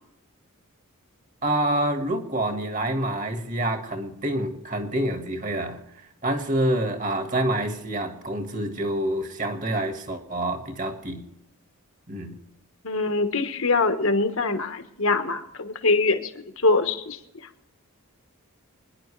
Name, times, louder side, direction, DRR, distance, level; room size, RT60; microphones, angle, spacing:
voice 1, 1.4-11.3 12.1-12.4, right 1 dB, 35° right, 6 dB, 1.7 m, -27 dB
voice 2, 12.8-16.3 16.6-17.2, left 3 dB, 60° left, 8 dB, 1.4 m, -23 dB
25.0 x 10.5 x 3.3 m, 0.87 s
head